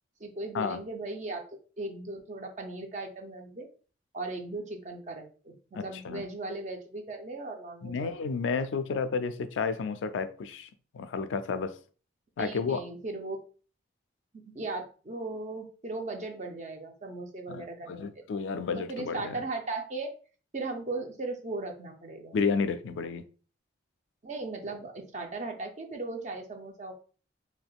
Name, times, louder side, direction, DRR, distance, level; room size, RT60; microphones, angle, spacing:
voice 1, 0.2-1.4 1.8-3.7 4.1-8.1 12.4-13.4 14.5-18.1 18.8-20.1 20.5-22.4 24.2-26.9, right 2 dB, 40° right, 0.5 m, -37 dB
voice 2, 5.7-6.2 7.8-11.7 12.4-12.8 17.5-19.4 22.3-23.2, left 5 dB, 70° left, 0.3 m, -31 dB
3.4 x 2.7 x 2.3 m
head